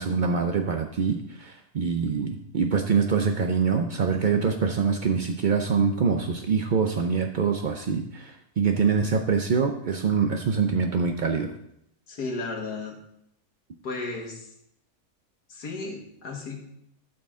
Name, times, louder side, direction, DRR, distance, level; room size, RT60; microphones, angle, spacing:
voice 1, 0.0-11.5, right 5 dB, 80° right, 5 dB, 0.4 m, -24 dB
voice 2, 12.1-13.0 13.8-14.5 15.5-16.6, left 3 dB, 85° left, 1 dB, 2.2 m, -34 dB
12.5 x 6.2 x 3.7 m, 0.75 s
omnidirectional pair, 1.6 m